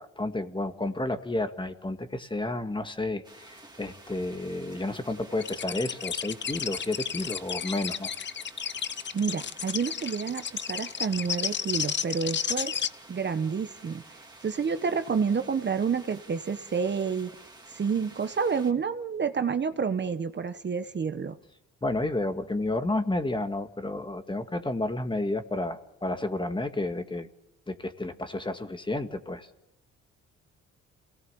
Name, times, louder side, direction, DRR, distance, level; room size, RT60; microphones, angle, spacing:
voice 1, 0.0-8.2 21.8-27.3 27.7-29.5, left 2 dB, 15° left, 7 dB, 2.0 m, -31 dB
sound 1, 3.2-18.7, right 2 dB, 15° right, 3.1 m, -51 dB
sound 2, 5.4-12.9, left 7 dB, 40° left, 0.8 m, -32 dB
voice 2, 9.1-12.8 13.1-14.0 14.4-17.3 17.7-21.3, right 6 dB, 35° right, 9 dB, 1.2 m, -29 dB
27.5 x 18.0 x 7.1 m, 0.91 s
cardioid pair, 90°, 30 cm